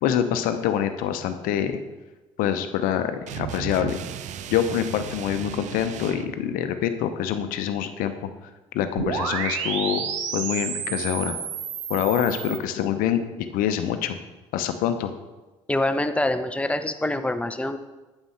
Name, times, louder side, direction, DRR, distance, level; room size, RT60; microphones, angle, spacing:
voice 1, 0.0-1.8 2.4-4.0 4.5-8.1 8.7-10.0 10.3-11.3 11.9-13.2 13.5-14.2 14.5-15.1, left 9 dB, 60° left, 9 dB, 0.7 m, -25 dB
sound 1, 3.3-6.4, right 10 dB, 50° right, 0.5 m, -35 dB
sound 2, 9.0-12.6, right 6 dB, 80° right, 0.9 m, -30 dB
voice 2, 15.7-17.8, left 1 dB, 10° left, 9 dB, 0.7 m, -25 dB
8.9 x 7.3 x 3.3 m, 1.1 s
hypercardioid pair, 55°, 16 cm